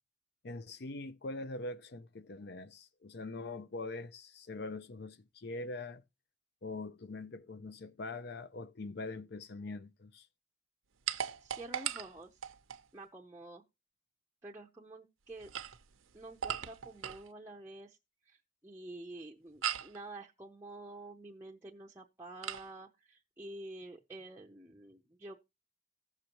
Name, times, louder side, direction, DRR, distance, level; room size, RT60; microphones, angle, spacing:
voice 1, 0.4-6.0 6.6-10.3, left 2 dB, 55° left, 0.5 m, -43 dB
sound 1, 11.1-12.9 15.3-17.3 19.6-20.0 22.4-22.7, right 9 dB, 85° right, 0.7 m, -38 dB
voice 2, 11.4-12.4 12.9-13.6 14.4-15.5 16.1-18.0 18.2-18.4 18.6-25.4, right 2 dB, 10° right, 0.6 m, -49 dB
16.0 x 6.6 x 2.9 m
head